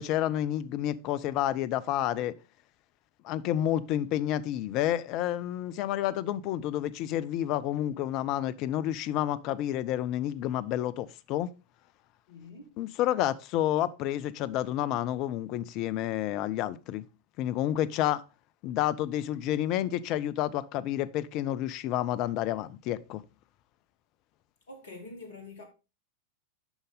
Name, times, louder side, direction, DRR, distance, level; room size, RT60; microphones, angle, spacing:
voice 1, 0.0-2.3 3.2-11.5 12.8-17.0 17.4-18.2 18.6-23.2, left 12 dB, 40° left, 0.4 m, -30 dB
voice 2, 12.3-12.7 24.7-25.7, left 3 dB, 60° left, 1.6 m, -45 dB
7.0 x 5.4 x 3.8 m
figure-of-eight pair, 90°, 0 cm